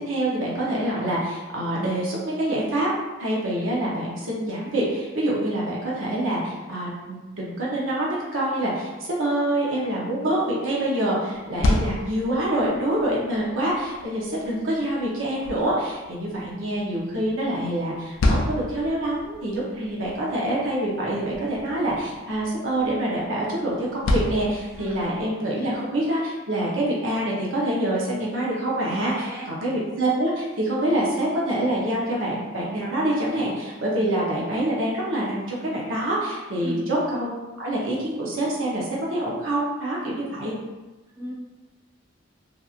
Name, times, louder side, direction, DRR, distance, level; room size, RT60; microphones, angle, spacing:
voice 1, 0.1-2.9 3.2-37.3 37.6-40.5, right 1 dB, 75° right, -5 dB, 0.8 m, -26 dB
sound 1, 11.3-25.3, left 1 dB, 85° left, 0.4 m, -31 dB
voice 2, 29.1-29.5 36.6-37.0 41.2-41.3, equal, 15° right, -8 dB, 0.6 m, -36 dB
2.9 x 2.5 x 2.4 m, 1.1 s
head